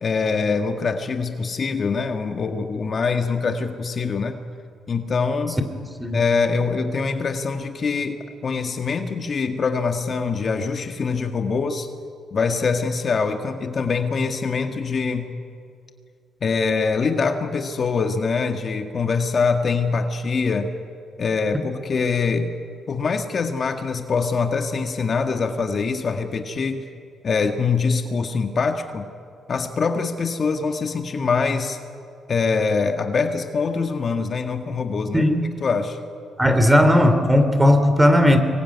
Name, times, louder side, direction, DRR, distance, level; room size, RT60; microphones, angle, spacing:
voice 1, 0.0-4.4 4.9-5.6 6.1-11.9 12.3-15.3 16.4-20.7 21.2-22.5 22.9-26.8 27.2-29.0 29.5-31.8 32.3-35.3 35.6-36.0, left 4 dB, 45° left, 6 dB, 1.8 m, -24 dB
voice 2, 36.4-38.4, left 1 dB, 10° right, 8 dB, 3.1 m, -16 dB
25.5 x 21.5 x 9.8 m, 2.4 s
cardioid pair, 90°, 0 cm